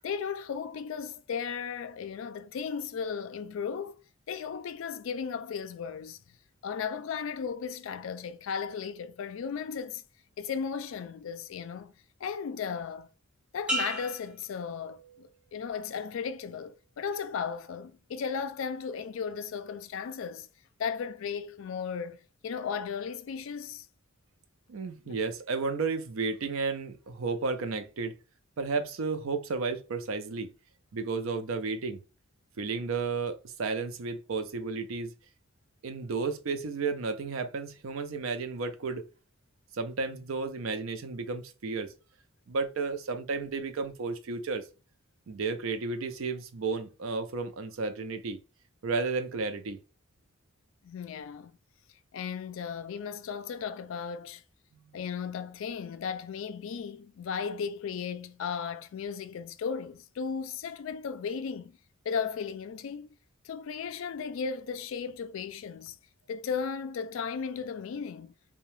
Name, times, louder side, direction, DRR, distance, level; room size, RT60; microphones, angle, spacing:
voice 1, 0.0-4.0 4.3-6.2 6.6-10.0 10.4-11.9 12.2-13.1 13.5-20.5 20.8-23.9 25.1-25.2 50.8-51.5 52.1-54.4 54.9-61.8 62.1-63.1 63.4-66.0 66.3-68.3, left 6 dB, 65° left, 0.3 m, -35 dB
sound 1, 13.7-15.5 16.0-16.4, right 1 dB, 5° right, 0.5 m, -36 dB
voice 2, 24.7-28.1 28.6-30.5 30.9-32.0 32.6-35.1 35.8-39.0 39.7-41.9 42.5-44.6 45.3-48.4 48.8-49.8, right 4 dB, 70° right, 0.5 m, -32 dB
2.7 x 2.2 x 3.1 m
head